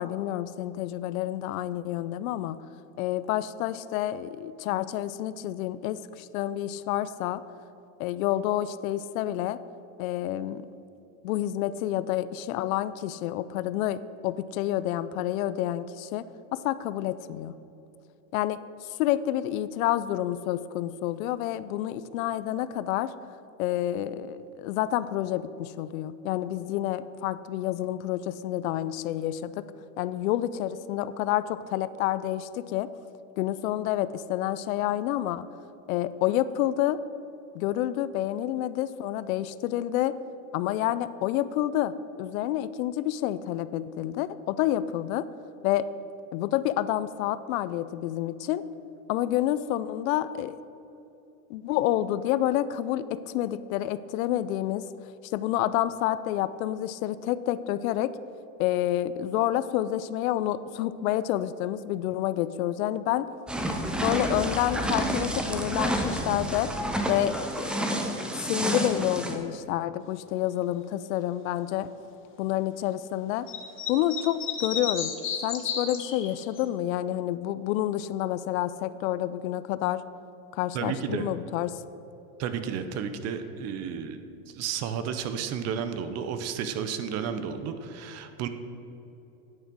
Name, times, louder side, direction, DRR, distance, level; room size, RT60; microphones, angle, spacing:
voice 1, 0.0-2.6 3.0-7.4 8.0-9.6 10.0-10.6 11.2-16.2 16.5-17.5 18.3-18.6 19.0-23.1 23.6-29.6 30.0-32.9 33.4-35.5 35.9-37.0 37.5-40.1 40.5-41.9 42.2-45.3 45.6-45.9 46.3-48.6 49.1-50.6 51.5-54.8 55.3-58.1 58.6-63.3 63.9-66.7 67.1-67.8 68.4-71.9 72.4-73.5 73.9-75.1 75.4-80.0 80.5-81.8, left 13 dB, 75° left, 15 dB, 0.5 m, -28 dB
sound 1, 63.5-69.4, right 1 dB, 5° right, 0.3 m, -29 dB
sound 2, 73.5-76.6, left 7 dB, 30° left, 1.1 m, -32 dB
voice 2, 80.7-81.3 82.4-84.2 84.5-88.5, right 7 dB, 35° right, 9 dB, 0.7 m, -32 dB
9.6 x 5.0 x 6.2 m, 2.9 s
supercardioid pair, 125°, 42 cm